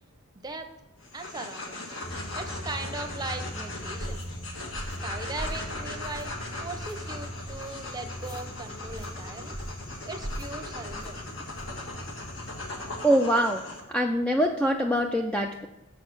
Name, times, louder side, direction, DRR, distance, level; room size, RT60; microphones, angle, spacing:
sound 1, 1.0-13.8, left 2 dB, 60° left, 1.6 m, -39 dB
voice 1, 1.1-2.0 2.3-4.2 5.0-9.6 10.1-11.2, right 2 dB, 20° right, 6 dB, 0.7 m, -39 dB
sound 2, 2.0-13.0, equal, 40° left, 0.9 m, -41 dB
sound 3, 4.0-4.3 4.7-5.0 5.4-5.7 6.0-6.4 6.7-7.0 7.4-7.7 8.2-8.4 8.9-9.1 9.5-9.8 10.2-10.5 10.9-11.1 11.5-11.8, right 1 dB, 85° left, 2.3 m, -39 dB
voice 2, 13.0-13.6 13.9-15.7, equal, 5° left, 3 dB, 0.3 m, -24 dB
7.3 x 6.4 x 6.0 m, 0.96 s
head